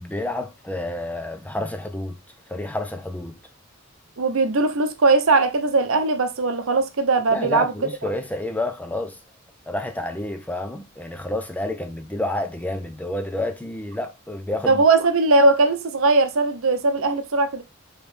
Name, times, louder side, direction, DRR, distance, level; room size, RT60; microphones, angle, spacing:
voice 1, 0.0-2.2 2.5-3.4 7.3-9.2 9.7-14.8, left 1 dB, 5° left, 0.4 m, -29 dB
voice 2, 4.2-7.7 14.7-17.6, right 3 dB, 65° right, 0.7 m, -19 dB
5.0 x 3.2 x 3.2 m
head